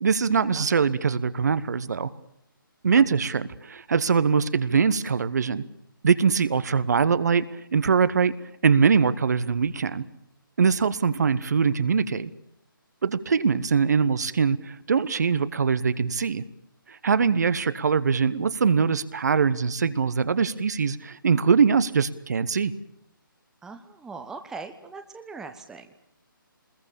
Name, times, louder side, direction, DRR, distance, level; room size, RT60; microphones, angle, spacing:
voice 1, 0.0-2.1 2.8-5.6 6.0-8.3 8.6-10.0 10.6-12.3 13.0-16.4 16.9-22.7, right 6 dB, 50° right, 15 dB, 1.2 m, -22 dB
voice 2, 23.6-26.0, right 4 dB, 5° right, 7 dB, 0.9 m, -40 dB
26.0 x 21.0 x 7.1 m, 0.74 s
figure-of-eight pair, 145°, 12 cm